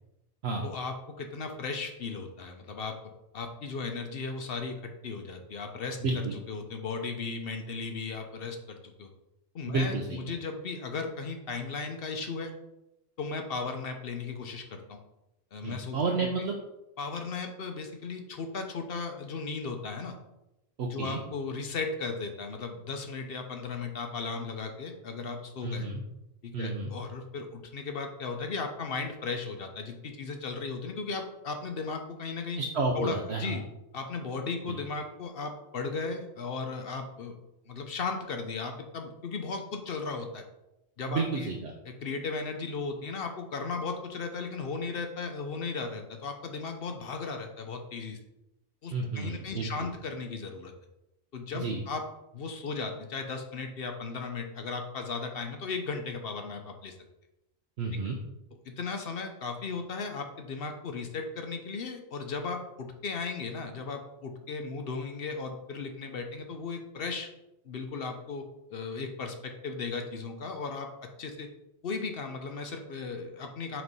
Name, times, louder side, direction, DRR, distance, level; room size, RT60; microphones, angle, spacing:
voice 1, 0.6-2.9 3.3-6.0 6.5-9.1 9.5-12.5 13.2-15.0 15.5-16.3 17.0-20.2 20.9-25.9 26.4-32.6 33.0-33.6 33.9-37.3 37.7-40.4 41.0-41.5 41.9-48.2 48.8-50.7 51.3-52.0 52.3-56.9 58.6-67.3 67.6-68.4 68.7-70.9 71.2-71.5 71.8-73.8, left 4 dB, 60° left, 5 dB, 0.8 m, -36 dB
voice 2, 6.0-6.3 9.7-10.2 15.6-16.6 20.8-21.2 25.6-26.0 26.5-26.9 32.6-33.6 34.7-34.8 41.1-41.7 48.9-49.7 51.5-51.8 57.8-58.2, right 3 dB, 65° right, 1 dB, 0.9 m, -31 dB
5.9 x 3.2 x 5.3 m, 0.92 s
omnidirectional pair, 1.2 m